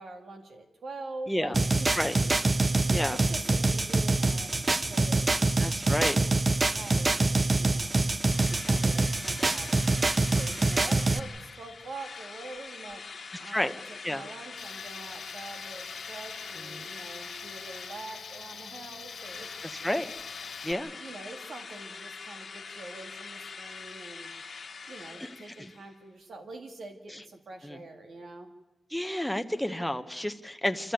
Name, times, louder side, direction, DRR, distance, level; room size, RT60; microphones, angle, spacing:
voice 1, 0.0-2.3 3.1-5.6 5.9-6.3 6.6-8.0 8.6-19.7 21.0-24.3 24.9-28.5, right 2 dB, 70° right, 4 dB, 2.3 m, -45 dB
voice 2, 1.3-1.6 1.9-2.1 2.9-3.2 5.6-6.2 13.5-13.8 14.0-14.2 16.7-16.9 19.6-20.1 20.6-20.9 25.2-25.3 25.6-25.7 27.6-27.8 28.9-30.9, left 1 dB, 5° left, 7 dB, 1.0 m, -30 dB
sound 1, 1.5-11.2, right 2 dB, 30° right, 0.7 m, -25 dB
Drill, 8.3-18.7 19.1-26.0, left 5 dB, 50° left, 1.6 m, -44 dB
Tools, 14.6-20.7, left 6 dB, 80° left, 1.3 m, -44 dB
28.0 x 13.5 x 9.2 m, 1.0 s
wide cardioid pair, 130°, 0 cm